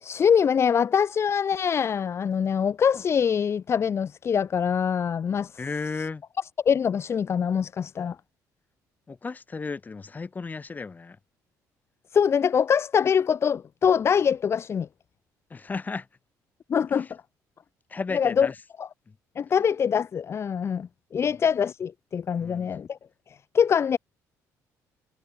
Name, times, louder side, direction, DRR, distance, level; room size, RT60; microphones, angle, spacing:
voice 1, 0.0-5.6 6.6-8.2 12.1-14.9 16.7-17.1 18.1-18.5 18.8-18.9 19.3-23.0 23.3-24.0, left 7 dB, 40° left, 1.6 m, -24 dB
voice 2, 5.6-6.2 9.1-11.2 15.5-16.1 16.9-17.0 17.9-18.5 21.2-21.4 22.4-22.7, left 4 dB, 25° left, 5.6 m, -34 dB
cardioid pair, 115°, 7 cm